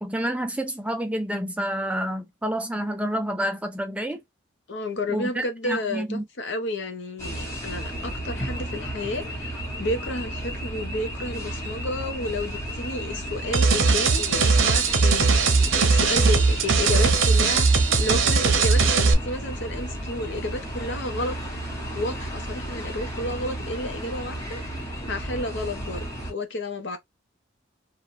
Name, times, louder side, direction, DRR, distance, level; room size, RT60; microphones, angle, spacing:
voice 1, 0.0-4.2 5.1-6.3, equal, 5° right, 0.3 m, -29 dB
voice 2, 4.7-21.4 21.9-27.0, left 1 dB, 60° left, 0.8 m, -32 dB
sound 1, 7.2-26.3, right 1 dB, 15° left, 1.1 m, -33 dB
sound 2, 13.5-19.1, right 4 dB, 85° right, 0.7 m, -19 dB
3.0 x 2.3 x 2.6 m
head